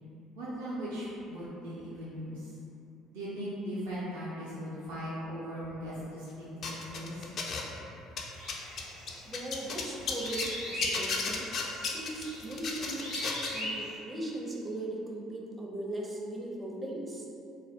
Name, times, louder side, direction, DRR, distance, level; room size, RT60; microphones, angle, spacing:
voice 1, 0.4-2.5 3.1-7.2, equal, 70° right, -10 dB, 0.5 m, -38 dB
sound 1, 6.6-7.8 8.1-10.5 10.8-13.6, left 4 dB, 50° left, 0.4 m, -34 dB
sound 2, 8.3-13.9, left 1 dB, 80° left, 1.0 m, -41 dB
voice 2, 9.2-11.5 11.8-13.1 13.5-17.3, right 1 dB, 20° right, -2 dB, 0.5 m, -38 dB
2.5 x 2.0 x 3.4 m, 2.8 s
figure-of-eight pair, 60°, 0 cm